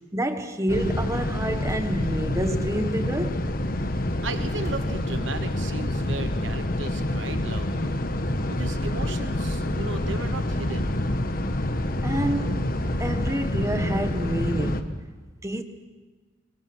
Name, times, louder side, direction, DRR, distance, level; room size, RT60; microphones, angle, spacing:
voice 1, 0.1-3.4 12.0-12.6 13.0-14.9 15.4-15.6, right 1 dB, 15° right, 1.4 m, -28 dB
sound 1, 0.7-14.8, left 1 dB, 45° left, 1.3 m, -27 dB
sound 2, 0.9-15.0, equal, 75° left, 3.1 m, -41 dB
Slam, 1.6-1.9 2.9-3.1 4.4-5.7, equal, 15° left, 3.1 m, -46 dB
voice 2, 4.2-8.0 8.5-11.0, right 3 dB, 70° right, 1.1 m, -36 dB
26.0 x 24.0 x 6.3 m
head